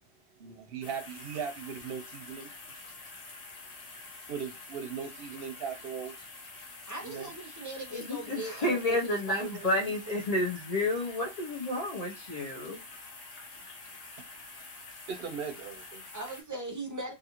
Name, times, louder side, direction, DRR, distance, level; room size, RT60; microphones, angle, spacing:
voice 1, 0.4-2.5 4.3-6.3 7.0-7.3 15.1-16.0, right 6 dB, 70° right, 0.8 m, -38 dB
sound 1, 0.8-16.4, left 3 dB, 70° left, 1.0 m, -47 dB
voice 2, 6.9-10.2 16.1-17.1, right 3 dB, 25° right, 0.5 m, -39 dB
voice 3, 7.9-12.8, left 2 dB, 45° left, 0.6 m, -31 dB
2.5 x 2.4 x 2.9 m
omnidirectional pair, 1.1 m